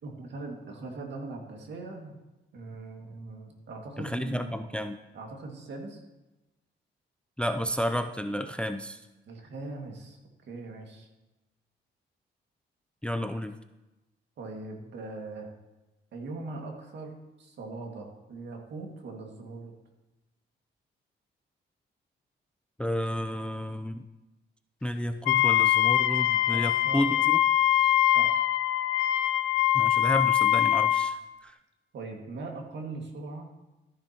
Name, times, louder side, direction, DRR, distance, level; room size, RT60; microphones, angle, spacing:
voice 1, 0.0-2.2 2.5-4.6 5.1-6.0 9.3-11.1 14.4-15.5 16.1-19.7 26.5-27.2 27.7-28.4 31.9-33.5, right 3 dB, 65° right, 2 dB, 2.0 m, -41 dB
voice 2, 4.0-5.0 7.4-9.0 13.0-13.6 22.8-24.1 24.8-27.4 29.7-31.6, equal, 5° left, 8 dB, 0.4 m, -31 dB
Wind instrument woodwind instrument, 25.3-31.2, left 13 dB, 90° left, 0.4 m, -23 dB
13.5 x 10.0 x 2.9 m, 1.0 s
cardioid pair, 90°, 20 cm